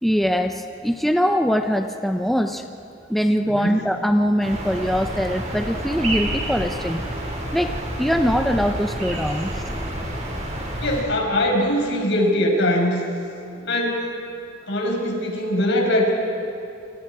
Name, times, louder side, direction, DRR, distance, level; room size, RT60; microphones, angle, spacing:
voice 1, 0.0-2.6 3.1-7.0 7.5-7.7 8.0-9.9, equal, ahead, 5 dB, 0.8 m, -22 dB
voice 2, 3.4-3.8 10.8-13.0 13.5-14.1 14.7-16.1, left 1 dB, 65° left, 1 dB, 5.5 m, -21 dB
sound 1, 4.4-11.0, right 1 dB, 35° right, 5.5 m, -29 dB
29.5 x 27.5 x 4.9 m, 2.7 s
head